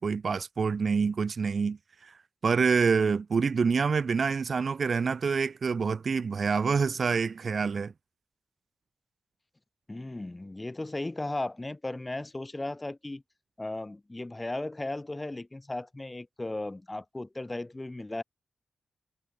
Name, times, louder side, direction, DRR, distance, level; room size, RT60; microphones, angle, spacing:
voice 1, 0.0-2.1 2.4-7.9, right 5 dB, 55° right, 1.5 m, -27 dB
voice 2, 9.9-13.2 13.6-18.2, left 2 dB, 20° left, 3.2 m, -36 dB
cardioid pair, 75°, 0 cm